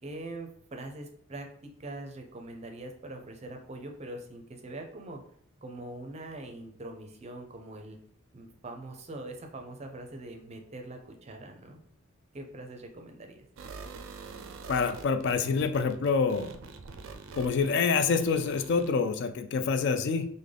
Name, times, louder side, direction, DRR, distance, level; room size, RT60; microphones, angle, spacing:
voice 1, 0.0-5.2 5.6-8.0 8.3-11.8 12.3-13.4, right 2 dB, 35° right, 4 dB, 0.5 m, -43 dB
sound 1, 13.6-18.9, right 4 dB, 90° right, 0.4 m, -45 dB
voice 2, 14.7-16.5 17.4-20.3, left 5 dB, 60° left, 8 dB, 0.3 m, -26 dB
3.6 x 2.1 x 3.3 m, 0.64 s
head